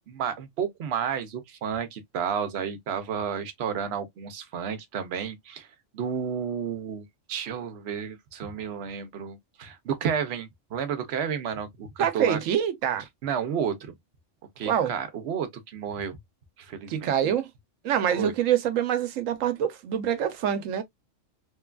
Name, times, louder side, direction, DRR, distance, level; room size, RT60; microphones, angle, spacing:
voice 1, 0.0-5.7 5.9-12.4 13.2-13.9 14.6-16.2 16.6-17.3 18.1-18.3, right 7 dB, 60° right, 0.8 m, -31 dB
voice 2, 12.0-13.0 14.7-14.9 16.9-17.5 17.8-20.8, right 9 dB, 90° right, 1.0 m, -25 dB
3.1 x 2.3 x 2.2 m
omnidirectional pair, 1.3 m